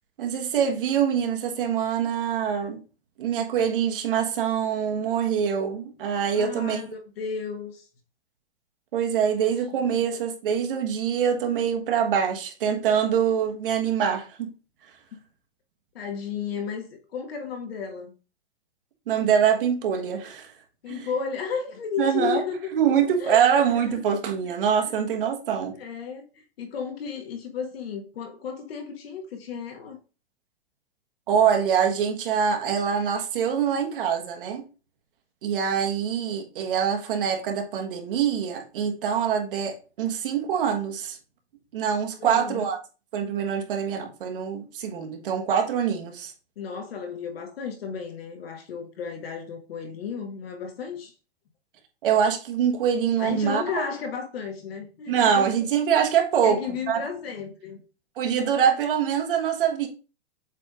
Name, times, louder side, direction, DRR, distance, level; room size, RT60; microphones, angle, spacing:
voice 1, 0.2-2.8 3.2-6.9 8.9-14.5 19.1-20.5 20.9-21.1 22.0-22.4 22.7-25.7 31.3-34.6 35.4-41.2 41.7-42.8 43.1-46.3 52.0-53.6 55.1-56.6 56.9-57.0 58.2-59.9, right 8 dB, 55° right, 1.5 m, -24 dB
voice 2, 6.3-7.9 9.7-10.1 15.9-18.1 20.8-22.7 23.2-24.0 24.8-24.9 25.7-30.0 42.2-42.7 46.6-51.1 53.2-55.5 56.4-57.8, left 6 dB, 65° left, 1.9 m, -33 dB
7.5 x 3.4 x 3.7 m
supercardioid pair, 170°, 32 cm